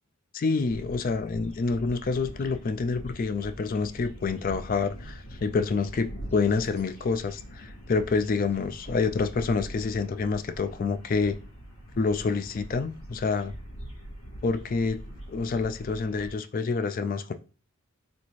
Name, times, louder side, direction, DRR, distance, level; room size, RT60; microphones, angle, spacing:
voice 1, 0.3-11.4 12.0-13.5 14.4-15.0 15.3-17.3, left 4 dB, 40° left, 10 dB, 0.3 m, -27 dB
sound 1, 0.7-16.4, equal, 70° left, 2.1 m, -43 dB
4.1 x 3.4 x 3.1 m, 0.38 s
head